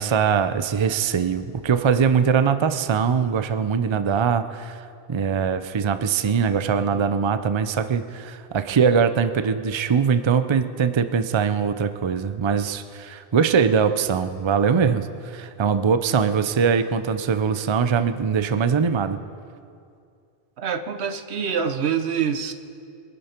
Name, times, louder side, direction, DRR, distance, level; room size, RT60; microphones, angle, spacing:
voice 1, 0.0-4.8 5.1-19.2, right 6 dB, 35° right, 11 dB, 0.5 m, -22 dB
voice 2, 20.6-22.5, right 7 dB, 80° right, 10 dB, 1.1 m, -25 dB
22.5 x 10.5 x 4.4 m, 2.4 s
omnidirectional pair, 1.1 m